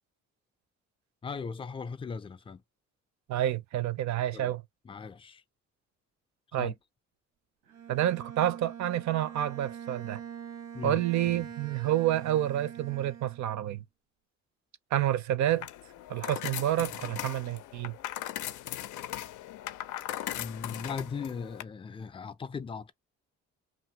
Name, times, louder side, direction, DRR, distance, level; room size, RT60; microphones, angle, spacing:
voice 1, 1.2-2.6 4.3-4.5 4.9-5.4 6.6-6.7 10.7-11.0 11.3-11.5 20.4-22.9, left 5 dB, 20° left, 0.4 m, -38 dB
voice 2, 3.3-4.6 6.5-6.7 7.9-10.2 10.8-13.8 14.9-15.7 16.1-17.9, right 12 dB, 65° right, 0.5 m, -29 dB
Bowed string instrument, 7.7-13.7, right 9 dB, 90° right, 0.9 m, -44 dB
sound 1, 15.5-21.6, left 13 dB, 80° left, 0.5 m, -39 dB
2.7 x 2.5 x 2.7 m
cardioid pair, 90°, 30 cm